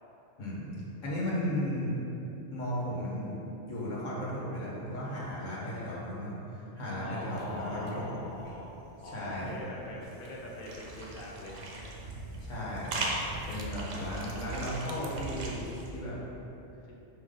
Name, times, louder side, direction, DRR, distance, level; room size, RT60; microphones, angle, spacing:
voice 1, 0.4-0.7 1.0-2.0 2.5-8.2 9.0-9.5 12.4-13.1 13.5-15.7 15.9-16.2, equal, 85° left, -7 dB, 1.8 m, -35 dB
voice 2, 7.0-8.8 9.0-11.9 13.7-14.5 16.9-17.0, left 1 dB, 50° left, -3 dB, 0.9 m, -43 dB
sound 1, 7.3-15.1, right 2 dB, 50° right, 0.6 m, -52 dB
sound 2, 10.0-15.9, right 2 dB, 70° right, 1.2 m, -39 dB
5.3 x 5.1 x 3.9 m, 2.8 s
omnidirectional pair, 1.3 m